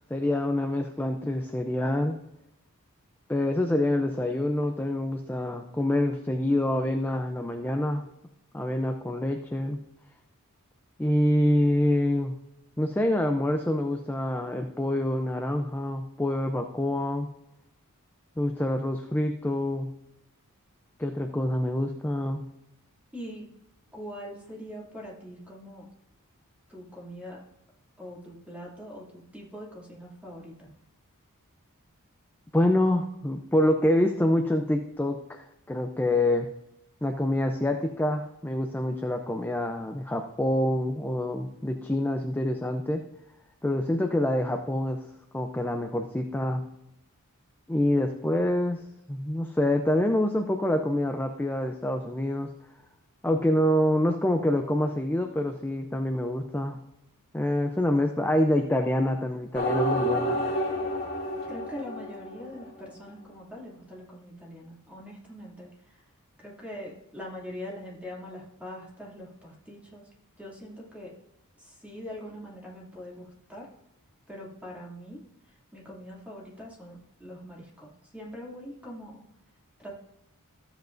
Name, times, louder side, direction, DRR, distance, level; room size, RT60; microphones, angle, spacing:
voice 1, 0.1-2.2 3.3-8.1 8.5-9.8 11.0-12.3 12.8-17.3 18.4-19.9 21.0-22.5 32.5-36.5 37.0-43.0 43.6-45.1 45.3-46.6 47.7-48.8 49.1-52.5 53.2-56.8 57.3-60.4, left 1 dB, 10° left, 5 dB, 0.5 m, -26 dB
voice 2, 23.1-23.5 23.9-25.9 26.7-27.4 28.0-30.7 61.5-66.1 66.4-70.1 70.4-71.1 71.6-73.7 74.3-79.3 79.8-79.9, equal, 5° right, -4 dB, 2.6 m, -43 dB
sound 1, 59.5-62.9, equal, 40° left, 2.3 m, -29 dB
14.0 x 8.0 x 2.6 m, 0.85 s
head